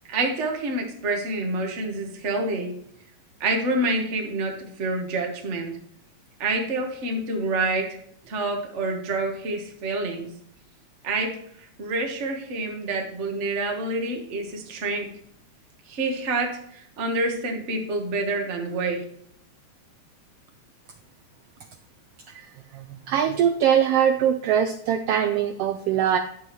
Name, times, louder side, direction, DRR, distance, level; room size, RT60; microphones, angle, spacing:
voice 1, 0.1-2.7 3.4-5.7 6.4-8.0 8.2-10.3 11.0-15.1 15.9-19.0, right 2 dB, 40° right, 3 dB, 1.0 m, -27 dB
voice 2, 22.7-26.2, right 9 dB, 85° right, 7 dB, 1.3 m, -22 dB
10.5 x 7.4 x 3.1 m, 0.68 s
omnidirectional pair, 3.3 m